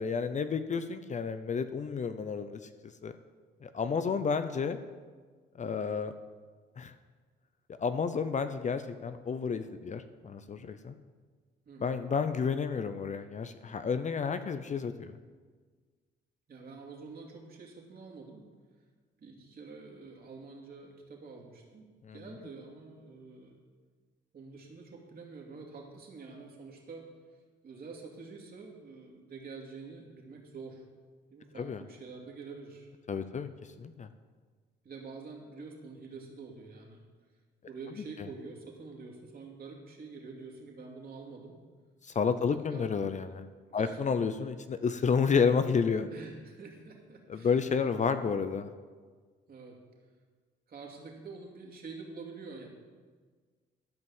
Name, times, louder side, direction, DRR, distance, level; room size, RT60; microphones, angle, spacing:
voice 1, 0.0-2.6 3.0-3.1 3.6-4.8 5.6-6.1 6.8-6.9 7.8-10.9 11.8-15.2 22.0-22.2 31.6-31.8 33.1-33.5 33.8-34.1 42.0-43.4 43.7-46.1 47.3-48.7, left 5 dB, 40° left, 11 dB, 0.6 m, -30 dB
voice 2, 3.8-4.2 11.6-12.0 16.5-18.4 19.2-23.5 24.3-27.1 27.6-30.8 31.3-32.9 34.8-37.1 37.7-41.6 42.4-42.9 43.7-44.0 46.1-47.6 49.5-49.8 50.7-52.7, right 4 dB, 50° right, -1 dB, 2.7 m, -47 dB
13.0 x 5.4 x 7.2 m, 1.5 s
cardioid pair, 90°, 20 cm